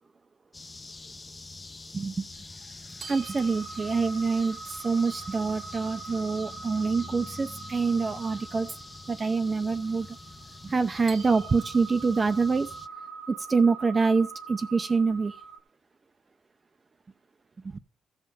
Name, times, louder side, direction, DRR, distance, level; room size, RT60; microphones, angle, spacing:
sound 1, 0.5-12.9, left 3 dB, 25° left, 0.5 m, -45 dB
voice 1, 1.9-2.3 3.1-8.7 9.1-10.1 10.6-12.7 13.3-15.4 17.6-17.8, right 4 dB, 30° right, 0.6 m, -26 dB
sound 2, 3.0-15.6, right 5 dB, 50° right, 1.0 m, -43 dB
14.0 x 5.7 x 5.2 m
cardioid pair, 90°, 0 cm